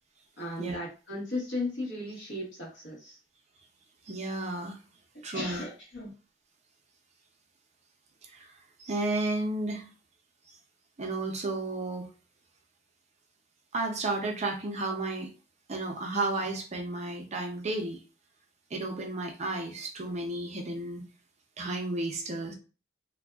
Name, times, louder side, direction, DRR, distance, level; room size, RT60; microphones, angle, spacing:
voice 1, 0.4-3.2 5.1-6.1, left 2 dB, 75° left, -3 dB, 1.2 m, -36 dB
voice 2, 4.1-4.8 5.2-5.6 8.2-9.9 11.0-12.1 13.7-15.3 15.7-18.0 18.7-21.1 21.6-22.5, right 2 dB, 35° right, 3 dB, 0.5 m, -32 dB
2.6 x 2.2 x 2.3 m, 0.34 s
head